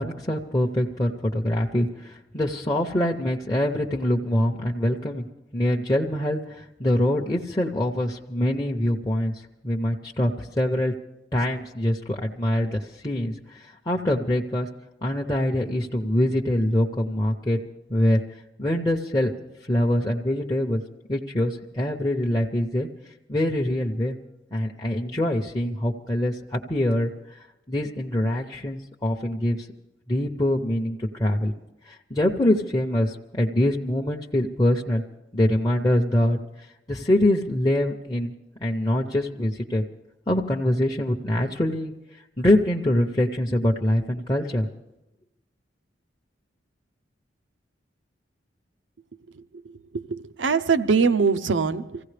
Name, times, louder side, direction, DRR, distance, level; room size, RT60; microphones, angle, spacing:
voice 1, 0.0-5.3 5.5-10.9 11.3-14.7 15.0-17.6 17.9-18.2 18.6-19.3 19.6-20.8 21.1-22.9 23.3-24.2 24.5-27.4 27.7-29.7 30.1-31.5 31.9-35.0 35.3-36.4 36.9-38.3 38.6-39.8 40.3-41.9 42.4-44.7, left 1 dB, 20° left, 0.7 m, -24 dB
voice 2, 49.9-52.0, right 5 dB, 90° right, 0.7 m, -22 dB
25.0 x 16.0 x 3.3 m
head